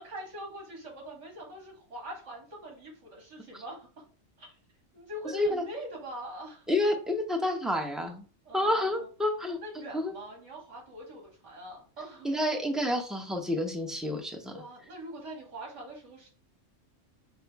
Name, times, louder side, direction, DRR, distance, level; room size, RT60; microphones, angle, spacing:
voice 1, 0.0-4.0 4.4-4.5 4.9-6.7 8.4-9.1 9.6-12.3 14.5-16.3, right 1 dB, 65° right, -1 dB, 2.1 m, -43 dB
voice 2, 6.7-8.2 8.5-9.6 9.9-10.1 12.2-14.5, left 1 dB, ahead, 2 dB, 0.5 m, -29 dB
5.5 x 2.0 x 4.5 m, 0.39 s
omnidirectional pair, 1.3 m